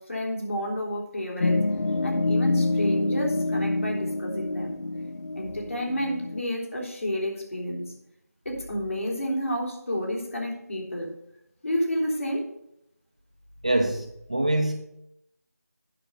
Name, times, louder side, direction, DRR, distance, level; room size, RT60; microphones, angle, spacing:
voice 1, 0.0-1.6 2.0-4.8 5.4-7.9 8.5-11.1 11.6-12.5, equal, 55° left, -1 dB, 3.5 m, -30 dB
sound 1, 1.4-6.4, left 2 dB, 85° left, 0.5 m, -26 dB
voice 2, 13.6-14.8, right 1 dB, 25° right, 3 dB, 0.6 m, -25 dB
9.1 x 6.7 x 5.7 m, 0.79 s
figure-of-eight pair, 180°, 9 cm